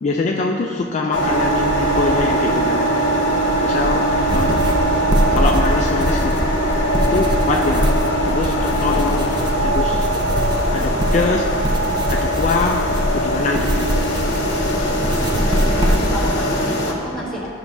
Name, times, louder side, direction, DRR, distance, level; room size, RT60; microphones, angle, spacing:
voice 1, 0.0-3.0 3.6-4.7 5.3-6.3 7.1-7.9 8.2-9.3 9.6-10.1 10.7-11.6 12.1-13.9, left 3 dB, 35° left, 1 dB, 0.3 m, -23 dB
sound 1, 1.1-16.9, right 1 dB, 55° left, 1.1 m, -21 dB
sound 2, 4.3-16.3, equal, 20° right, 0.5 m, -22 dB
voice 2, 15.1-17.5, equal, ahead, -8 dB, 1.5 m, -30 dB
13.5 x 5.9 x 2.6 m, 2.5 s
head